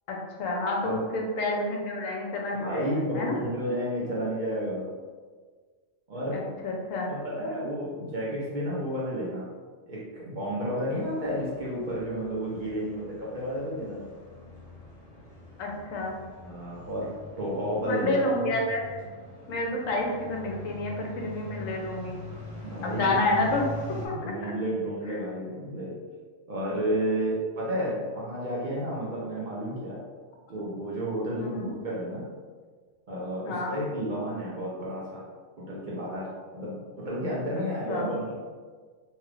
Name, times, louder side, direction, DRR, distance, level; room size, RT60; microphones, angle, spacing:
voice 1, 0.1-3.3 6.3-7.1 15.6-16.2 17.8-18.8 19.5-22.2 22.8-23.7 24.0-24.1 24.4-24.5 25.1-25.2 31.4-31.7 33.4-33.7 37.9-38.1, left 2 dB, 85° left, 0 dB, 1.0 m, -29 dB
voice 2, 2.5-4.9 6.1-6.4 7.1-9.5 9.9-14.1 16.4-18.2 22.6-23.2 24.2-25.9 26.5-30.0 30.5-32.3 33.1-35.2 35.6-38.3, equal, 50° right, -7 dB, 0.6 m, -31 dB
sound 1, 10.9-24.1, left 1 dB, 65° left, 0.3 m, -43 dB
2.9 x 2.3 x 3.2 m, 1.5 s
omnidirectional pair, 1.3 m